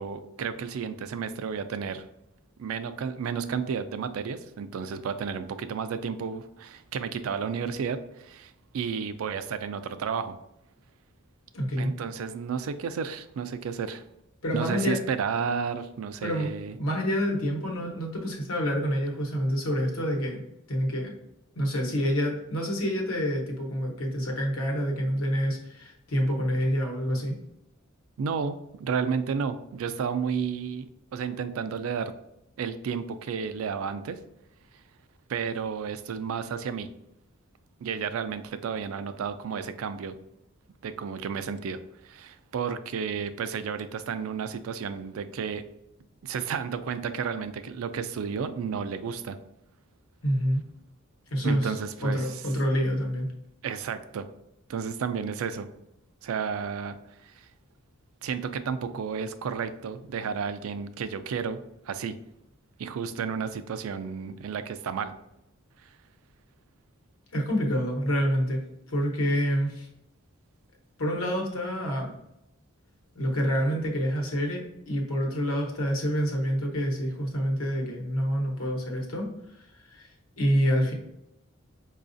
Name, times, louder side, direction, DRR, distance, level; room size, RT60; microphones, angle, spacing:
voice 1, 0.0-2.0 2.6-10.4 11.8-14.0 14.5-16.8 28.2-30.9 31.1-32.1 32.6-34.2 35.3-36.9 37.8-40.1 40.8-45.6 46.2-49.4 51.4-52.4 53.6-54.3 54.7-55.7 56.2-57.0 57.2-57.5 58.2-61.6 61.9-62.2 62.8-65.1 65.8-65.9, right 6 dB, 75° right, 11 dB, 0.3 m, -32 dB
voice 2, 11.5-11.9 14.4-15.0 16.2-16.5 16.8-20.4 20.7-21.1 21.5-27.4 50.2-50.6 51.3-51.7 52.0-53.3 67.3-69.9 71.0-72.1 73.1-79.3 79.5-80.1 80.4-80.9, equal, 85° left, 0 dB, 0.9 m, -27 dB
4.8 x 2.4 x 2.5 m, 0.83 s
head